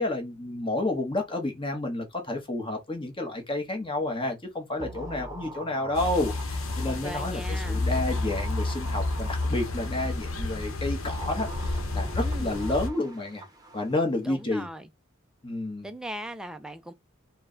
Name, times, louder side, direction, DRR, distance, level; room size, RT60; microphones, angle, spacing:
voice 1, 0.0-13.5 13.7-14.7 15.4-15.9, left 2 dB, 25° left, 1.1 m, -30 dB
sound 1, 4.8-10.3 10.9-14.1 14.4-14.5, right 2 dB, 20° right, 0.8 m, -44 dB
sound 2, 5.9-12.9, left 2 dB, 80° left, 0.8 m, -30 dB
voice 2, 6.8-7.8 12.2-12.5 14.2-14.9 15.8-16.9, right 1 dB, 5° right, 0.4 m, -39 dB
4.4 x 2.2 x 3.8 m
head